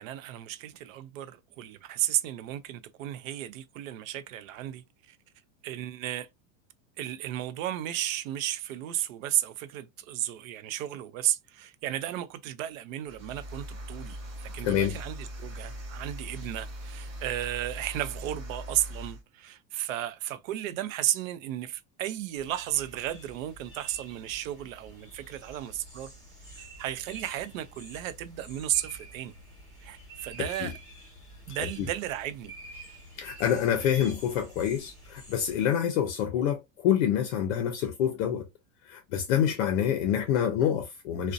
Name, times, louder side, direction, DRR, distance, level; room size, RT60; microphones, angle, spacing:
voice 1, 0.0-5.2 5.6-6.3 7.0-26.1 26.5-29.3 29.8-30.7 31.5-32.5, right 12 dB, 80° right, 0.5 m, -34 dB
sound 1, 13.1-19.2, equal, 45° right, 0.9 m, -40 dB
sound 2, 22.4-35.7, right 1 dB, 10° left, 1.1 m, -48 dB
voice 2, 30.4-30.7 31.8-31.9 33.2-38.5 38.9-41.3, left 9 dB, 60° left, 0.5 m, -27 dB
2.5 x 2.1 x 2.4 m
supercardioid pair, 175°, 40 cm